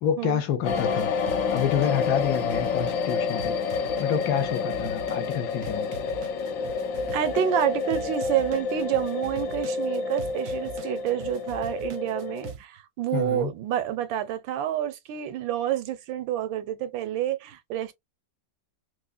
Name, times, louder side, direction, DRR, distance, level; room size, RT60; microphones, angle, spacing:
voice 1, 0.0-1.1 1.5-6.0 13.1-13.5, left 8 dB, 70° left, 1.0 m, -28 dB
sound 1, 0.6-12.5, left 5 dB, 85° left, 0.7 m, -29 dB
sound 2, 0.6-12.6, right 9 dB, 70° right, 0.9 m, -43 dB
voice 2, 7.1-17.9, right 11 dB, 90° right, 1.5 m, -28 dB
4.7 x 2.1 x 2.4 m
omnidirectional pair, 2.0 m